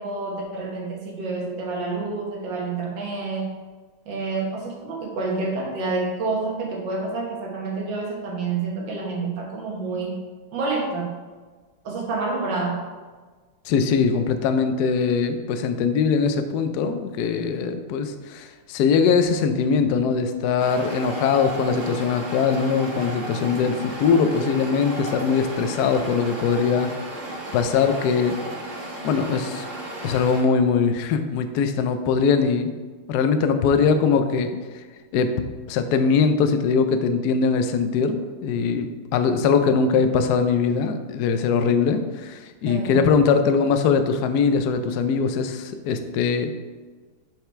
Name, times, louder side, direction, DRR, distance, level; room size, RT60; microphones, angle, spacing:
voice 1, 0.0-3.5 4.1-10.2 10.5-11.1 11.8-12.9 42.7-43.1, right 3 dB, 60° right, -1 dB, 1.8 m, -28 dB
voice 2, 13.7-26.9 27.5-28.4 29.0-29.6 30.0-32.7 33.1-34.8 35.1-35.3 35.7-46.5, left 5 dB, 90° left, 8 dB, 0.8 m, -21 dB
sound 1, 20.6-30.4, right 1 dB, 40° right, 1.4 m, -34 dB
7.7 x 4.9 x 3.3 m, 1.4 s
omnidirectional pair, 2.4 m